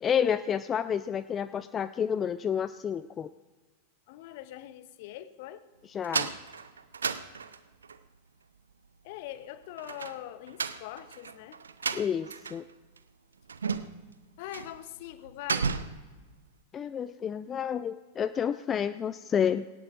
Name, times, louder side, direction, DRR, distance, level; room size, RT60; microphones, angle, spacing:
voice 1, 0.0-3.3 5.9-6.3 11.9-12.7 16.7-19.7, left 8 dB, 25° left, 13 dB, 0.3 m, -30 dB
voice 2, 4.1-5.7 9.0-11.6 14.4-15.8, left 13 dB, 50° left, 14 dB, 0.7 m, -42 dB
sound 1, 6.0-8.0 9.8-12.7 13.0-13.1 13.5-14.1 14.5-14.8 15.1-16.1, right 5 dB, 70° right, 0.6 m, -33 dB
19.5 x 17.5 x 2.5 m, 1.3 s
figure-of-eight pair, 90°, 0 cm